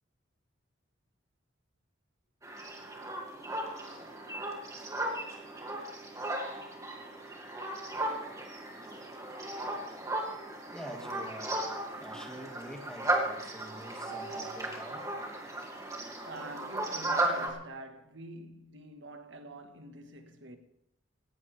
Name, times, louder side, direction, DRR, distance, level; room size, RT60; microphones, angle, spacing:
sound 1, 2.4-17.5, right 2 dB, 15° right, 2.5 m, -36 dB
voice 1, 10.7-15.1 15.5-15.6, equal, 5° left, 2.2 m, -46 dB
voice 2, 16.2-20.6, right 1 dB, 90° right, 1.7 m, -46 dB
18.0 x 17.0 x 3.5 m
head